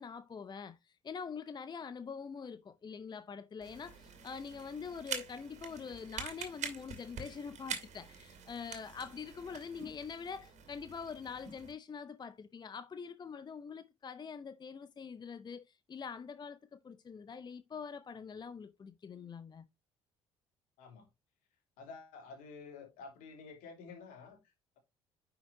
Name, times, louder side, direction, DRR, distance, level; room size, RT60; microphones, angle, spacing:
voice 1, 0.0-19.7, left 6 dB, 30° left, 0.7 m, -45 dB
sound 1, 3.6-11.7, right 7 dB, 55° right, 2.4 m, -46 dB
voice 2, 20.8-21.1 21.8-24.5, left 4 dB, 65° left, 2.9 m, -50 dB
10.0 x 5.8 x 2.7 m
hypercardioid pair, 50°, 14 cm